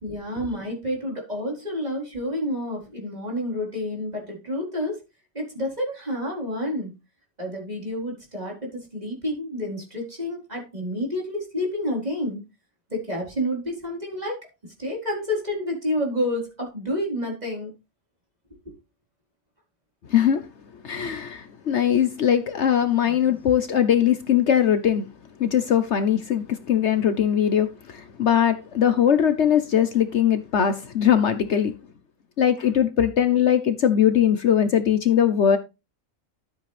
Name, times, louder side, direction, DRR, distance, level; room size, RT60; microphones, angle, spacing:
voice 1, 0.0-5.0 5.3-7.0 7.4-12.4 12.9-17.7 18.6-18.7, left 1 dB, 30° right, 4.5 m, -29 dB
voice 2, 20.1-20.5 20.8-25.1 25.4-31.8 32.4-35.6, left 9 dB, 60° left, 1.1 m, -21 dB
13.0 x 7.8 x 3.3 m
omnidirectional pair, 1.4 m